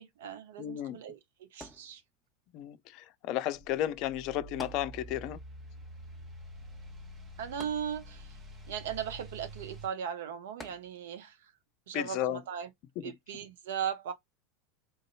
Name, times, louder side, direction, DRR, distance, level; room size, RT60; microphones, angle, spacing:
voice 1, 0.0-2.0 7.4-8.4 8.7-11.5 11.9-12.7 13.0-14.1, right 8 dB, 65° right, 0.6 m, -38 dB
voice 2, 0.6-1.0 2.5-5.4 11.9-12.4 13.0-13.1, left 12 dB, 50° left, 0.4 m, -33 dB
sound 1, 1.6-2.5 4.6-5.5 5.7-5.8 7.6-8.4 10.6-11.3 12.0-12.1, left 1 dB, 5° left, 1.2 m, -49 dB
sound 2, 3.5-9.9, right 1 dB, 30° right, 1.0 m, -47 dB
3.9 x 2.6 x 2.6 m
figure-of-eight pair, 80°, 0 cm